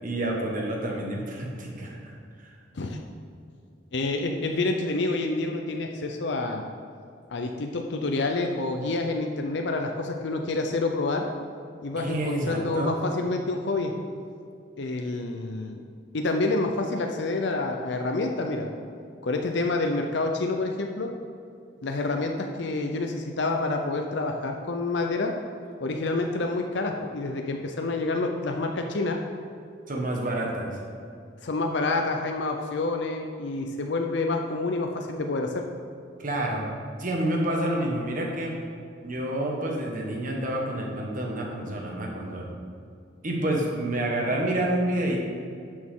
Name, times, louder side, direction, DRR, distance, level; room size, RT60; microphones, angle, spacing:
voice 1, 0.0-2.1 2.4-2.6 11.9-12.9 29.9-30.8 36.2-36.7 37.0-38.5 39.0-42.5 43.2-45.2, right 1 dB, 45° right, -1 dB, 1.5 m, -28 dB
voice 2, 3.9-6.7 7.3-11.3 11.8-13.9 14.8-15.8 16.1-18.7 19.2-21.1 21.8-25.3 25.8-29.2 31.4-35.6, left 2 dB, 65° left, 3 dB, 0.6 m, -28 dB
11.0 x 6.3 x 3.7 m, 2.4 s
head